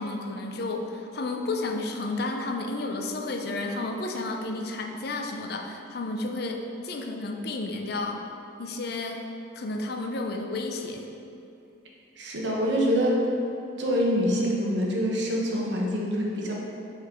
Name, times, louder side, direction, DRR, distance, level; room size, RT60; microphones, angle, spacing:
voice 1, 0.0-8.2 8.6-9.2 9.6-11.1, left 2 dB, 55° left, 3 dB, 0.5 m, -32 dB
voice 2, 12.2-13.2 13.8-16.5, equal, 70° right, -2 dB, 1.0 m, -25 dB
5.7 x 5.6 x 3.5 m, 2.7 s
head